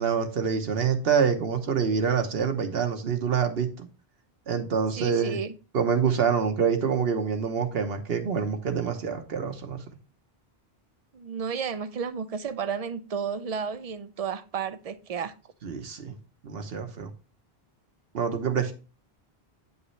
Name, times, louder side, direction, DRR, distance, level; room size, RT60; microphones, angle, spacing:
voice 1, 0.0-3.9 4.5-5.4 5.7-9.8 15.6-16.1 16.4-17.1 18.1-18.7, right 6 dB, 70° right, 1.2 m, -26 dB
voice 2, 5.0-5.5 11.1-15.3, right 6 dB, 45° right, 0.5 m, -32 dB
8.6 x 5.5 x 3.2 m
omnidirectional pair, 1.1 m